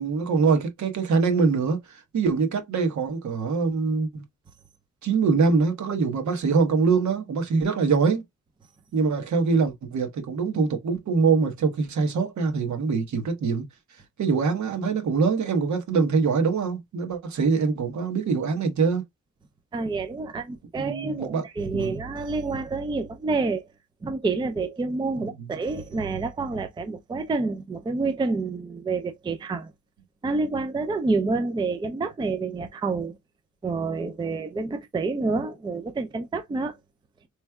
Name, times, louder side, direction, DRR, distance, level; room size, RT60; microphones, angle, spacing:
voice 1, 0.0-4.2 5.0-8.2 8.9-13.6 14.2-19.0 20.8-21.5 21.7-22.0 25.2-25.6, right 4 dB, 70° right, 1.1 m, -24 dB
voice 2, 19.7-23.7 24.0-29.7 30.2-33.2 33.6-36.7, right 3 dB, 15° right, 0.4 m, -28 dB
4.4 x 3.1 x 2.2 m
wide cardioid pair, 175°, 30 cm